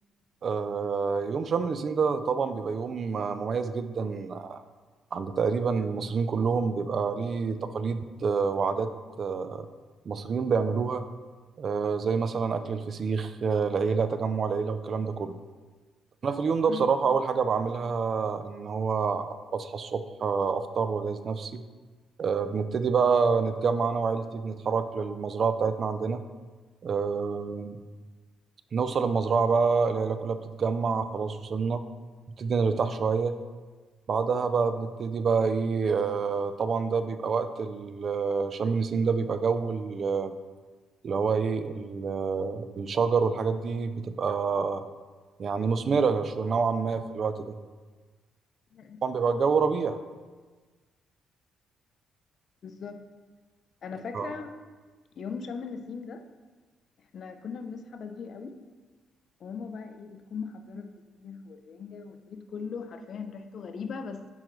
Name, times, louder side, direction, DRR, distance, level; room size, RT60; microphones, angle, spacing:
voice 1, 0.4-4.6 5.1-8.9 9.2-9.7 10.1-11.0 11.6-15.3 16.2-21.6 22.2-26.2 26.8-27.8 28.7-31.8 32.4-33.3 34.1-40.3 41.0-44.8 45.4-47.6 49.0-50.0 54.1-54.3, right 5 dB, 50° right, 10 dB, 0.4 m, -27 dB
voice 2, 52.6-53.0 53.8-54.5 55.2-56.2 57.1-58.6 59.4-64.2, left 5 dB, 55° left, 7 dB, 0.5 m, -39 dB
8.6 x 3.8 x 3.1 m, 1.4 s
cardioid pair, 90°, 0 cm